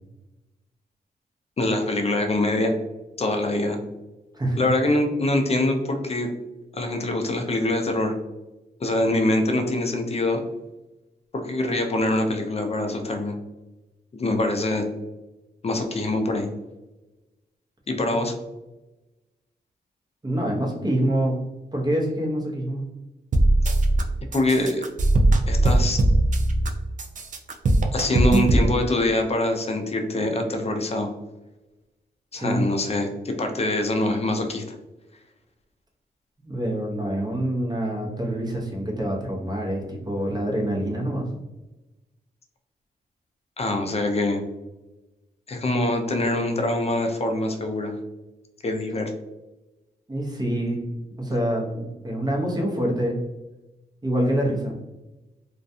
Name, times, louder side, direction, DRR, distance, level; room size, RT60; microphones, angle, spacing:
voice 1, 1.6-2.7 3.2-3.8 4.6-6.3 6.7-8.1 8.8-10.4 11.3-13.4 14.1-14.9 15.6-16.5 17.9-18.4 24.3-24.8 25.5-26.0 27.9-31.1 32.3-34.6 43.6-44.4 45.5-48.0 48.6-49.1, left 2 dB, 35° left, 4 dB, 0.5 m, -24 dB
voice 2, 20.2-21.4 21.7-22.8 32.3-32.6 36.4-41.3 50.1-50.9 51.2-53.2 54.0-54.8, right 1 dB, 25° right, -1 dB, 0.9 m, -26 dB
sound 1, 23.3-24.0 24.3-26.7 27.0-28.7, right 1 dB, 50° right, 0.4 m, -19 dB
2.4 x 2.2 x 2.6 m, 1.1 s
cardioid pair, 65°, 17 cm